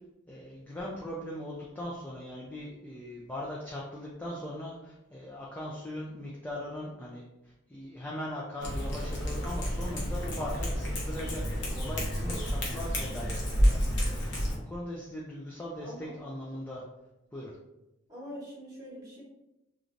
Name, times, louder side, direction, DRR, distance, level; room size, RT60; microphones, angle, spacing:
voice 1, 0.3-16.8 17.3-17.5, left 1 dB, 10° left, -5 dB, 0.3 m, -40 dB
Cat, 8.6-14.5, equal, 60° left, 0.8 m, -30 dB
voice 2, 12.2-12.5 15.8-16.1 18.1-19.2, equal, 15° right, -6 dB, 1.1 m, -44 dB
3.2 x 2.5 x 2.5 m, 0.93 s
head